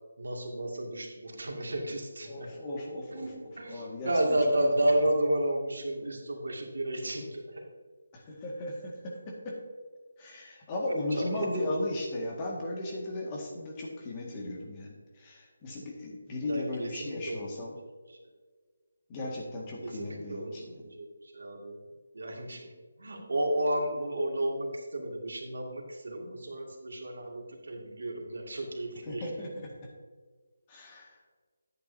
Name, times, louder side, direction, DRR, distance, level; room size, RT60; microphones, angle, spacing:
voice 1, 0.2-2.5 3.1-7.6 11.1-11.6 16.3-17.5 18.1-18.2 19.8-21.8 22.1-22.7 23.0-29.3, right 1 dB, 75° right, 0 dB, 2.3 m, -32 dB
voice 2, 2.3-4.4 8.1-8.9 10.2-17.7 19.1-20.8 29.1-29.7 30.7-31.1, left 1 dB, 25° left, -2 dB, 1.9 m, -36 dB
10.5 x 8.7 x 2.7 m, 1.5 s
figure-of-eight pair, 160°, 0 cm